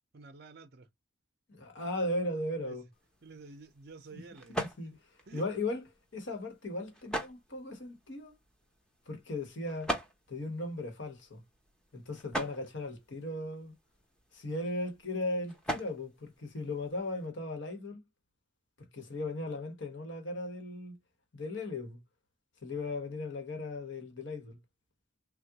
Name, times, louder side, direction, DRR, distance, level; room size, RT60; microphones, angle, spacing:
voice 1, 0.1-0.9 2.5-2.8 3.2-4.6 5.3-5.4, right 3 dB, 50° right, 0.6 m, -50 dB
voice 2, 1.5-2.9 4.1-4.2 4.5-4.9 5.3-5.8 6.1-8.3 9.1-9.9 10.3-11.4 11.9-13.7 14.3-18.0 18.9-21.0 21.3-22.0 22.6-24.6, left 2 dB, 70° left, 1.1 m, -37 dB
sound 1, 2.9-17.3, equal, 5° left, 0.6 m, -43 dB
3.5 x 2.2 x 2.8 m
head